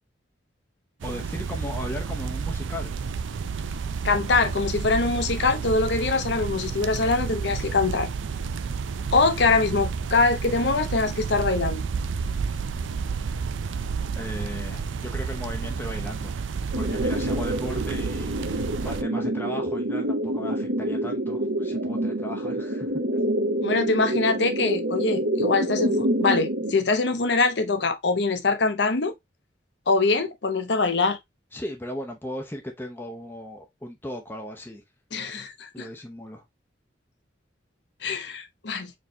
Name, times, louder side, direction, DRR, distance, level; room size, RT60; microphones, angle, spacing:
voice 1, 1.0-2.9 14.1-16.3 16.8-23.0 31.5-34.8 35.7-36.4, left 1 dB, 10° left, 0.7 m, -36 dB
sound 1, 1.0-19.0, right 5 dB, 85° right, 0.4 m, -31 dB
voice 2, 4.0-8.1 9.1-11.8 23.6-29.1 29.9-31.2 35.1-35.9 38.0-38.9, left 3 dB, 60° left, 0.7 m, -23 dB
sound 2, 16.7-26.7, right 1 dB, 65° right, 1.1 m, -27 dB
4.5 x 3.2 x 2.7 m
head